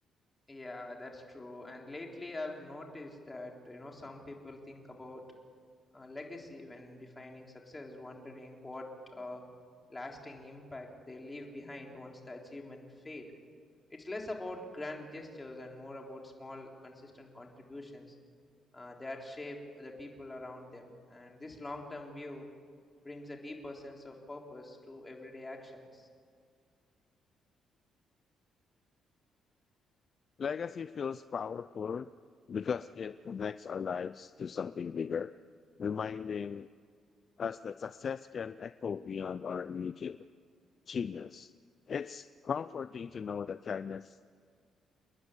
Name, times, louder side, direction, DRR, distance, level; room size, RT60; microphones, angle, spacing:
voice 1, 0.5-5.2 5.9-9.5 9.9-13.3 13.9-18.2 18.7-22.5 23.0-26.1, left 2 dB, 20° left, 1 dB, 3.8 m, -45 dB
voice 2, 30.4-32.1 32.5-35.3 35.8-36.7 37.4-40.2 40.9-41.5 41.9-44.2, left 6 dB, 50° left, 14 dB, 0.4 m, -37 dB
28.5 x 10.5 x 9.9 m, 2.1 s
cardioid pair, 90°, 0 cm